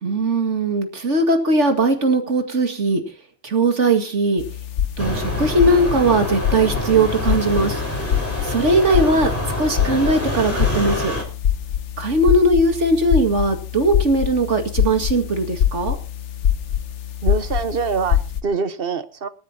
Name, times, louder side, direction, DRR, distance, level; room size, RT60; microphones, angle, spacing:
voice 1, 0.0-3.0 3.4-4.4 5.0-7.8 8.4-9.3 9.6-11.1 12.0-16.0, right 2 dB, 85° right, 6 dB, 2.5 m, -19 dB
sound 1, 4.4-18.4, left 9 dB, 75° left, 1.2 m, -25 dB
sound 2, 5.0-11.2, left 1 dB, 10° left, 5.4 m, -26 dB
voice 2, 17.2-19.3, right 5 dB, 55° right, 12 dB, 1.4 m, -24 dB
27.0 x 9.9 x 2.9 m, 0.36 s
omnidirectional pair, 1.2 m